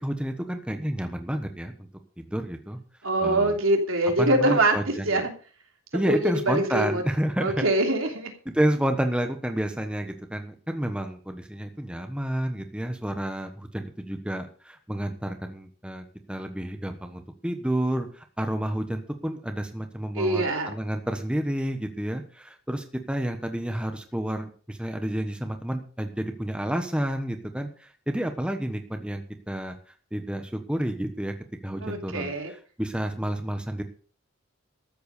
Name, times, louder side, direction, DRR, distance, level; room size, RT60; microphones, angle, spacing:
voice 1, 0.0-1.9 2.2-2.8 3.2-3.6 4.2-5.2 5.9-7.6 8.4-29.7 30.1-31.3 31.6-33.8, right 1 dB, 5° right, 6 dB, 1.2 m, -30 dB
voice 2, 3.0-5.3 5.9-7.0 7.4-8.3 20.1-20.7 31.8-32.5, right 2 dB, 75° right, 3 dB, 3.1 m, -24 dB
13.5 x 8.0 x 6.6 m, 0.41 s
head